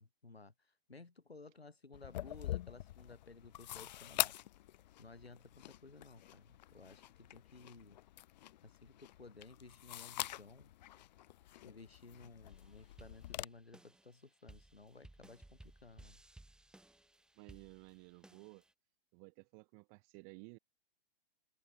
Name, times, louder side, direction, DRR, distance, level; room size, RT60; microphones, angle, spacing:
voice 1, 0.0-4.3 5.0-8.0 8.6-10.7 11.6-16.2, left 3 dB, 90° left, 4.6 m, -56 dB
sound 1, 1.9-13.4, left 14 dB, 45° left, 0.5 m, -45 dB
sound 2, 12.5-18.7, right 1 dB, ahead, 1.1 m, -60 dB
voice 2, 17.4-18.6 19.1-20.6, right 40 dB or more, 35° right, 2.2 m, -55 dB
figure-of-eight pair, 115°, 30 cm